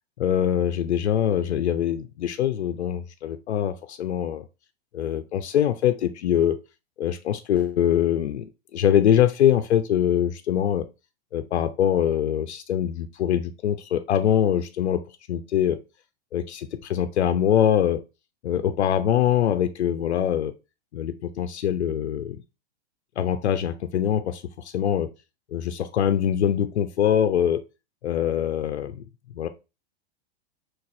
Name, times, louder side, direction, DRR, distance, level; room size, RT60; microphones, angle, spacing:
voice 1, 0.2-4.4 4.9-6.6 7.0-10.9 11.3-15.0 15.3-15.8 16.3-18.0 18.4-20.5 20.9-22.4 23.2-25.1 25.5-27.6 28.0-29.0 29.3-29.5, left 10 dB, 90° left, 0.5 m, -23 dB
5.9 x 2.4 x 2.5 m
hypercardioid pair, 110°, 32 cm